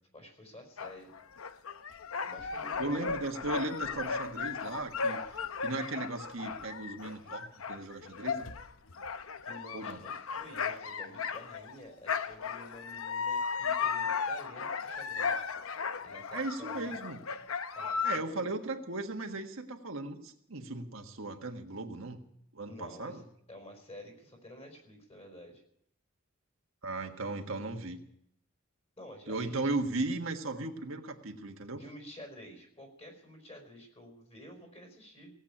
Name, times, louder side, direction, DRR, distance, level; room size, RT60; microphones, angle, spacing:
voice 1, 0.1-1.1 2.2-3.0 9.4-15.4 16.0-17.0 17.7-18.5 22.7-25.6 29.0-29.7 31.8-35.3, left 1 dB, 30° left, 2 dB, 4.9 m, -50 dB
sound 1, 0.8-11.8 12.1-18.2, left 5 dB, 80° left, 0.8 m, -35 dB
voice 2, 2.8-8.5 9.7-10.0 16.3-17.2 18.0-22.2 22.5-23.2 26.8-28.0 29.3-31.8, right 2 dB, 70° right, 3 dB, 1.5 m, -37 dB
17.5 x 8.3 x 9.9 m, 0.72 s
head